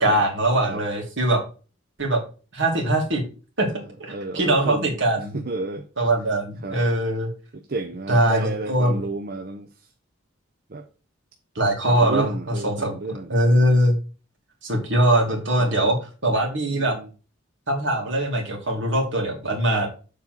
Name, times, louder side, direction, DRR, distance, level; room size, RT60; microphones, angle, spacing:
voice 1, 0.0-1.4 2.0-2.2 2.5-3.2 3.6-3.7 4.0-5.4 6.0-7.3 8.1-9.0 11.6-12.3 12.6-12.9 13.3-14.0 14.6-16.0 16.2-16.9 17.7-19.9, right 1 dB, 65° right, 1 dB, 2.5 m, -21 dB
voice 2, 4.1-5.9 6.6-6.8 7.5-9.7 10.7-10.9 11.8-13.3 15.3-15.9 16.7-17.1, right 3 dB, 50° right, 7 dB, 0.7 m, -31 dB
7.2 x 4.1 x 6.0 m, 0.36 s
head